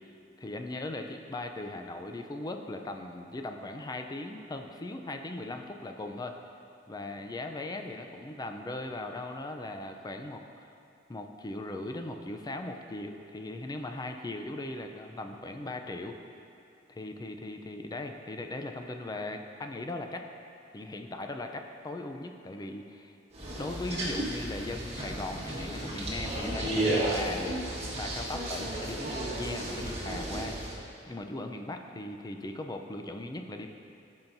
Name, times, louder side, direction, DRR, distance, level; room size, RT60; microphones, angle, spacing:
voice 1, 0.4-6.4 6.9-10.4 11.1-16.2 16.9-20.3 20.7-27.5 28.0-33.7, left 2 dB, 20° left, 5 dB, 0.4 m, -39 dB
sound 1, 23.3-30.7, right 1 dB, 35° right, 1.4 m, -33 dB
13.5 x 5.6 x 2.6 m, 2.6 s
head